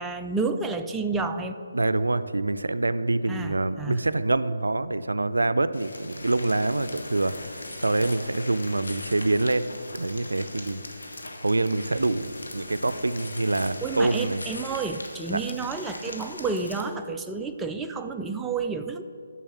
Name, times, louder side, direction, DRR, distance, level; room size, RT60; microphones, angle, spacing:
voice 1, 0.0-1.6 3.3-4.0 13.8-19.0, right 4 dB, 5° right, 5 dB, 0.3 m, -30 dB
voice 2, 1.7-10.8 11.4-14.4 15.3-15.4, right 2 dB, 90° right, 14 dB, 0.3 m, -26 dB
sound 1, 5.7-16.8, left 2 dB, 80° left, 1.2 m, -40 dB
7.1 x 6.2 x 7.0 m, 2.5 s
figure-of-eight pair, 150°, 0 cm